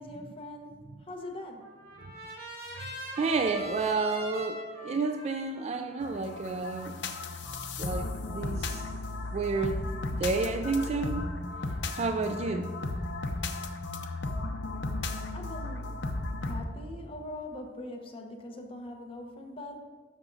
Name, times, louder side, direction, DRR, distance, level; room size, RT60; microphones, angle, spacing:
voice 1, 0.0-1.7 15.3-16.0 16.4-19.8, left 1 dB, 30° left, 1 dB, 0.9 m, -42 dB
Trumpet, 1.2-7.4, equal, 55° right, 1.9 m, -42 dB
voice 2, 3.1-6.9 7.8-8.8 9.3-9.8 10.2-11.3 11.9-12.7, right 4 dB, 35° right, 6 dB, 0.3 m, -30 dB
sound 1, 6.0-16.6, left 2 dB, 65° left, 0.6 m, -35 dB
12.5 x 5.9 x 2.7 m, 1.4 s
head